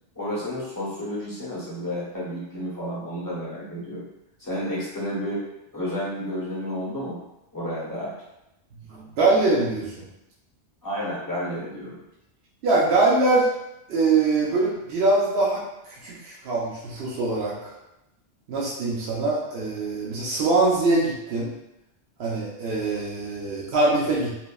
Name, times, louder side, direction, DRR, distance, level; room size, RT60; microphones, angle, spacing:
voice 1, 0.2-4.1 4.4-5.4 5.7-7.2 7.5-8.2 10.8-12.0, equal, 20° left, -8 dB, 0.7 m, -31 dB
voice 2, 8.9-10.0 12.6-13.5 13.9-17.7 18.5-21.5 22.2-24.4, right 3 dB, 65° right, -5 dB, 0.8 m, -23 dB
2.9 x 2.1 x 2.3 m, 0.89 s
omnidirectional pair, 1.2 m